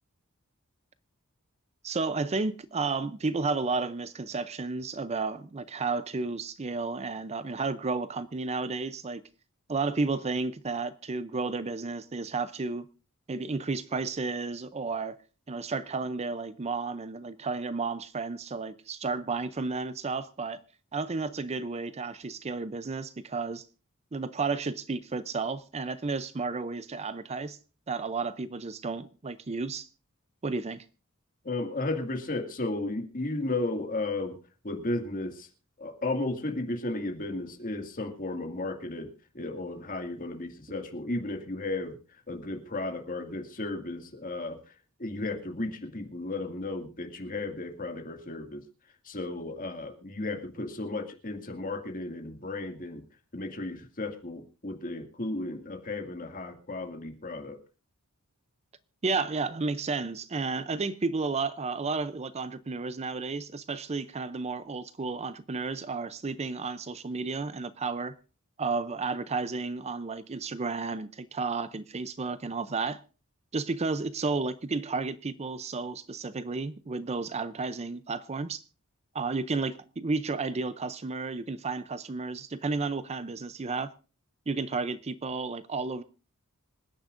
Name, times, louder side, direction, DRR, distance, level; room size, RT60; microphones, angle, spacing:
voice 1, 1.8-9.2 9.7-12.9 13.3-15.2 15.5-20.6 20.9-23.6 24.1-27.6 27.9-29.9 30.4-30.8 59.0-68.2 68.6-73.0 73.5-78.6 79.1-83.9 84.5-86.0, right 4 dB, 30° right, 0.5 m, -32 dB
voice 2, 31.4-34.4 34.6-35.5 35.8-42.0 42.3-44.6 45.0-48.6 49.0-53.0 53.3-57.6, left 2 dB, 40° left, 2.1 m, -34 dB
26.0 x 10.0 x 2.6 m
head